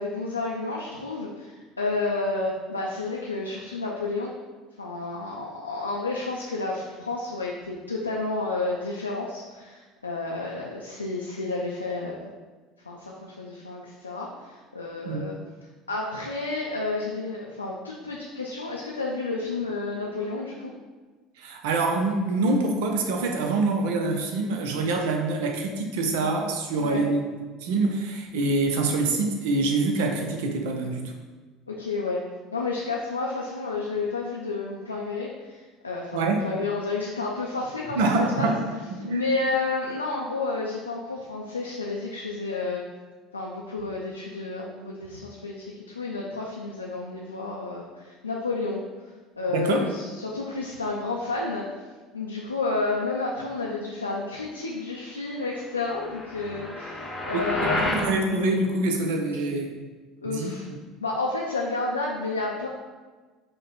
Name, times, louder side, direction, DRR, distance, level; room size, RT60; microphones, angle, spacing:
voice 1, 0.0-4.3 4.8-12.3 12.8-15.4 15.9-20.7 26.8-27.1 31.7-32.2 32.5-38.6 39.0-42.8 43.3-48.8 49.4-51.7 52.1-57.9 60.2-60.7 61.0-62.7, left 3 dB, 85° left, -3 dB, 0.4 m, -31 dB
voice 2, 21.4-27.2 27.6-31.1 36.1-36.5 38.0-38.6 39.0-39.3 49.5-49.9 57.3-57.5 57.8-59.7 60.2-60.6, right 2 dB, 65° right, 3 dB, 0.6 m, -25 dB
sound 1, 55.9-58.1, left 1 dB, 15° left, 0.8 m, -30 dB
5.0 x 2.2 x 4.1 m, 1.3 s
figure-of-eight pair, 65°, 0 cm